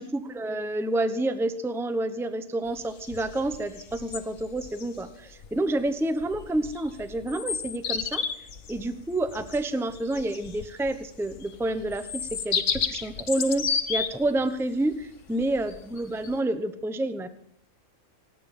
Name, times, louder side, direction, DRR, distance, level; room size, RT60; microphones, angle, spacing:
voice 1, 0.1-8.2 8.7-17.3, right 1 dB, ahead, 10 dB, 0.8 m, -29 dB
sound 1, 2.7-16.4, left 6 dB, 70° left, 1.5 m, -33 dB
27.5 x 9.3 x 5.4 m, 0.65 s
omnidirectional pair, 1.3 m